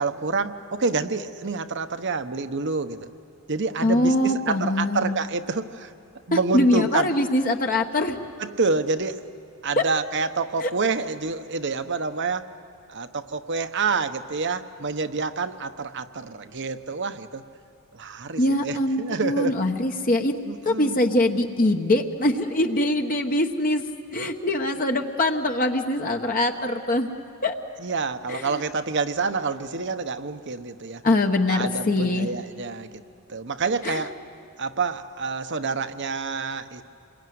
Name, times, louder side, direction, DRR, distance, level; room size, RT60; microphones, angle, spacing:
voice 1, 0.0-3.1 3.5-5.9 6.3-7.1 8.4-9.2 9.6-12.5 12.9-17.4 17.9-19.5 20.4-21.0 27.8-31.0 31.5-32.9 33.3-34.1 34.6-36.8, right 4 dB, 55° right, 9 dB, 1.1 m, -28 dB
voice 2, 3.8-5.1 6.5-8.2 9.8-9.9 10.6-10.7 18.4-20.3 20.6-23.8 24.1-27.1 27.4-27.5 28.3-28.6 31.0-32.3 33.8-34.0, left 1 dB, 40° left, 3 dB, 1.2 m, -23 dB
28.0 x 22.0 x 9.5 m, 2.8 s
head